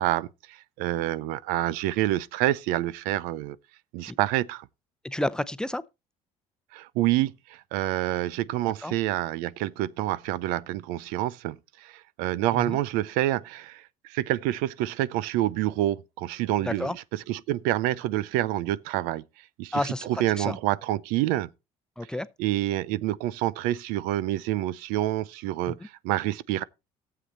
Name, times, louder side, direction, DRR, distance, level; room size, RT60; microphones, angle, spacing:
voice 1, 0.0-3.6 3.9-4.7 6.7-19.2 19.6-21.5 22.4-26.6, right 14 dB, 85° right, 0.5 m, -28 dB
voice 2, 5.0-5.8 8.8-8.9 12.5-12.8 16.6-16.9 19.7-20.1 20.4-20.6 22.0-22.3 25.7-25.8, left 1 dB, 5° left, 0.8 m, -30 dB
13.0 x 7.7 x 4.2 m
supercardioid pair, 85°, 14 cm